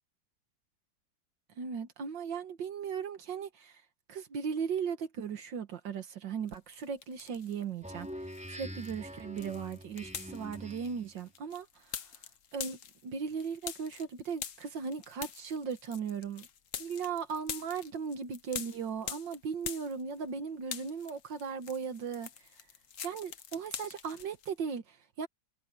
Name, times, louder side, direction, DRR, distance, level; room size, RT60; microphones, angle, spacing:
voice 1, 1.6-3.8 4.1-11.7 12.5-16.5 16.8-22.3 23.0-25.3, right 6 dB, 80° right, 2.1 m, -37 dB
sound 1, 6.5-7.6 8.0-20.4 20.6-24.5, left 8 dB, 50° left, 1.2 m, -44 dB
Speech synthesizer, 7.8-11.1, equal, 5° right, 4.5 m, -44 dB
omnidirectional pair, 2.0 m